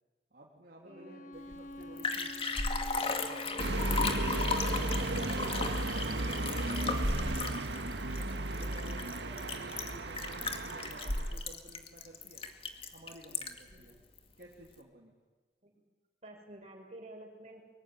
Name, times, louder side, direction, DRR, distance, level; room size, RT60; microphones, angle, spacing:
voice 1, 0.3-2.3 3.2-3.4 4.5-7.4 8.0-12.4 12.9-14.0 14.4-15.1, right 1 dB, 55° right, -3 dB, 3.4 m, -53 dB
Bowed string instrument, 0.8-5.7, left 1 dB, 45° left, 1.7 m, -48 dB
voice 2, 0.8-1.3 3.4-3.8 5.4-5.7 8.6-8.9 13.7-13.9 15.6-15.7 16.2-17.6, right 1 dB, 40° right, 1 dB, 6.4 m, -51 dB
Liquid, 1.5-1.6 1.8-13.7 14.2-14.3, left 3 dB, 30° left, 2.1 m, -35 dB
sound 1, 3.6-11.4, right 2 dB, 75° right, 1.8 m, -34 dB
24.0 x 23.0 x 10.0 m, 1.4 s
head